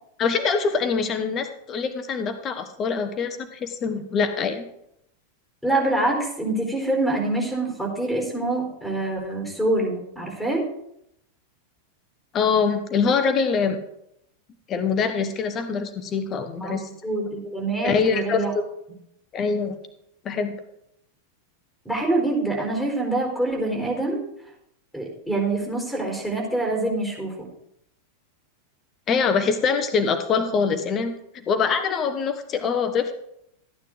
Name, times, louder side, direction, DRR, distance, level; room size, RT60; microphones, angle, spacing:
voice 1, 0.2-4.6 12.3-13.8 14.7-16.9 17.8-18.6 19.3-19.8 20.2-20.5 29.1-33.1, left 5 dB, 30° left, 9 dB, 1.4 m, -24 dB
voice 2, 5.6-10.7 16.5-16.8 17.0-18.5 21.8-24.2 24.9-27.5, right 2 dB, 5° right, 1 dB, 4.4 m, -25 dB
14.0 x 9.6 x 3.9 m, 0.76 s
figure-of-eight pair, 90°, 0 cm